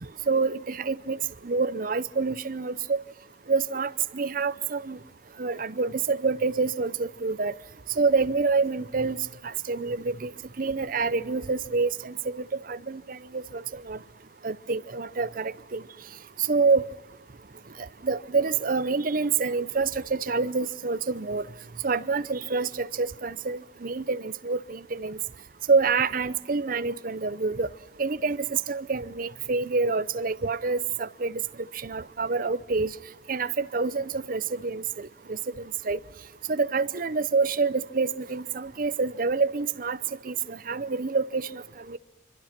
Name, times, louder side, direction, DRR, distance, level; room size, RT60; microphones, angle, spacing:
voice 1, 0.3-1.2 1.4-3.0 3.5-5.0 5.4-7.5 8.0-9.2 9.4-10.3 10.6-14.0 14.4-15.8 16.5-16.8 17.8-21.4 21.8-25.2 25.7-27.7 28.0-31.4 31.8-32.9 33.3-36.0 36.5-40.0 40.2-41.6 41.9-42.0, right 4 dB, 50° right, 15 dB, 0.7 m, -27 dB
26.0 x 24.5 x 6.0 m, 1.0 s
head